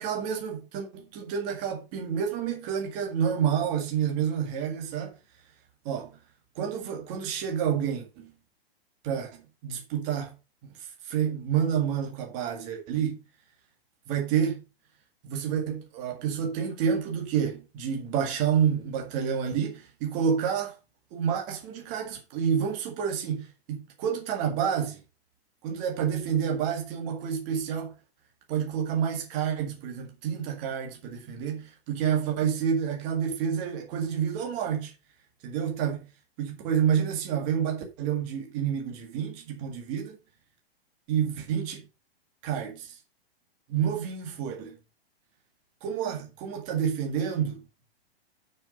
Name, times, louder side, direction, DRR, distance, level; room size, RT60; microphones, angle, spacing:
voice 1, 0.0-5.1 5.9-6.1 6.6-8.3 9.0-9.3 9.6-10.3 10.6-10.7 11.1-13.2 14.1-14.6 15.2-20.7 21.1-25.0 25.6-27.9 28.5-34.9 35.4-36.1 36.4-40.2 41.1-41.8 42.4-43.0 43.7-44.8 45.8-47.6, right 8 dB, 25° right, 1.9 m, -29 dB
6.9 x 6.4 x 5.2 m
hypercardioid pair, 170°, 31 cm